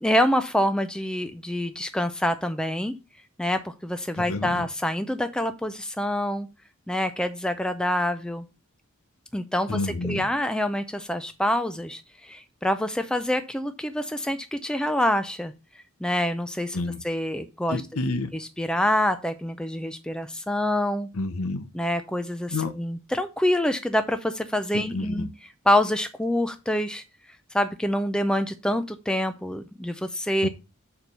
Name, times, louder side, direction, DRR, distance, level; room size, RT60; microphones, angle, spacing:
voice 1, 0.0-2.9 3.4-6.5 6.9-8.4 9.3-9.8 10.0-15.5 16.0-16.8 17.0-17.8 18.4-21.1 21.7-25.3 25.7-27.0 27.5-30.5, left 1 dB, 5° left, 0.4 m, -26 dB
voice 2, 4.2-4.6 9.7-10.3 16.7-17.0 17.7-18.3 21.1-21.7 22.5-22.7 24.7-25.3 30.4-30.5, left 2 dB, 70° left, 0.9 m, -29 dB
6.6 x 4.6 x 5.4 m
head